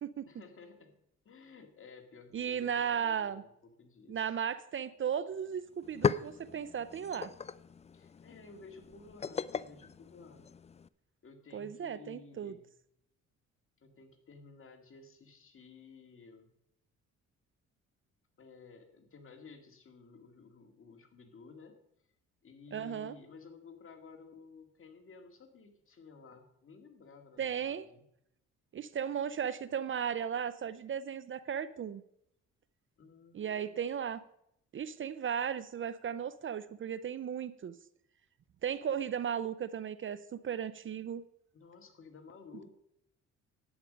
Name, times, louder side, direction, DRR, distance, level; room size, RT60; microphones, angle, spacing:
voice 1, 0.2-0.9 1.2-4.3 7.9-10.5 11.2-12.7 13.8-16.5 18.4-21.8 22.4-28.0 33.0-33.7 41.5-42.7, left 4 dB, 45° left, 5 dB, 2.0 m, -54 dB
voice 2, 2.3-3.4 4.1-7.3 11.5-12.5 22.7-23.1 27.4-27.9 28.7-32.0 33.3-34.2 34.7-37.7 38.6-41.2, right 8 dB, 40° right, 15 dB, 0.5 m, -36 dB
sound 1, 5.3-5.4 5.7-10.9, left 6 dB, 20° left, 0.4 m, -37 dB
11.0 x 8.9 x 5.1 m, 0.76 s
cardioid pair, 90°, 30 cm